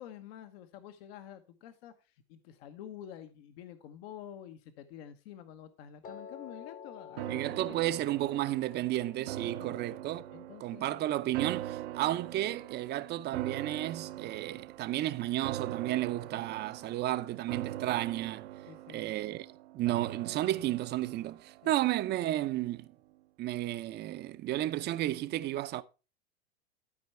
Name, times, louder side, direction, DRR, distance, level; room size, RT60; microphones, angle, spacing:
voice 1, 0.0-7.9 9.4-9.8 10.3-11.0 18.7-19.1 21.6-21.7, left 10 dB, 65° left, 1.0 m, -49 dB
Piano, 6.0-12.2, left 7 dB, 25° left, 0.9 m, -51 dB
sound 1, 7.2-22.5 22.8-22.9, right 13 dB, 75° right, 0.8 m, -42 dB
voice 2, 7.3-10.2 10.6-18.5 18.9-19.5 19.7-22.9 23.4-25.8, right 14 dB, 30° right, 0.6 m, -32 dB
12.5 x 4.5 x 4.3 m
supercardioid pair, 125°, 33 cm